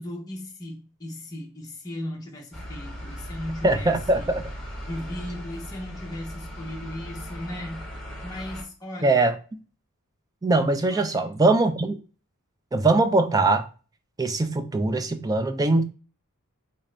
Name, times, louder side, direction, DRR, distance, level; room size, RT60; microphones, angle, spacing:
voice 1, 0.0-4.3 4.9-7.9 8.2-9.3 10.8-11.4, left 1 dB, 15° left, 0.8 m, -37 dB
sound 1, 2.5-8.6, equal, ahead, 1.3 m, -38 dB
voice 2, 3.6-4.4 9.0-9.3 10.4-12.0 12.7-13.7 14.2-15.8, right 2 dB, 15° right, 0.3 m, -21 dB
3.9 x 2.5 x 3.2 m
head